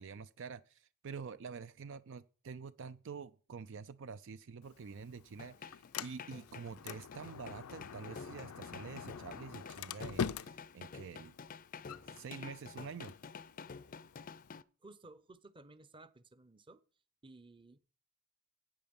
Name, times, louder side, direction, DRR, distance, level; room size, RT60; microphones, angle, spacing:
voice 1, 0.0-11.3 12.1-13.1, right 5 dB, 60° right, 0.4 m, -47 dB
Sliding door, 4.6-14.6, left 7 dB, 90° left, 0.5 m, -46 dB
sound 1, 5.4-14.6, left 5 dB, 40° left, 0.5 m, -50 dB
voice 2, 14.8-16.8 17.2-17.8, right 2 dB, 25° right, 0.8 m, -56 dB
12.5 x 8.7 x 5.3 m
head